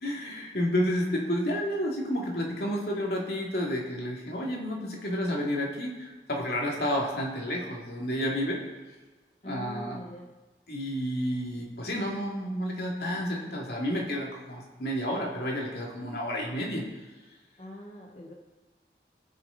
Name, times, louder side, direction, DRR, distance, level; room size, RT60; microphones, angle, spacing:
voice 1, 0.0-8.6 9.4-10.0 10.7-16.8, equal, 65° left, -2 dB, 2.3 m, -30 dB
voice 2, 9.4-10.3 17.6-18.3, left 1 dB, 35° left, -1 dB, 1.0 m, -42 dB
18.5 x 6.2 x 3.9 m, 1.2 s
head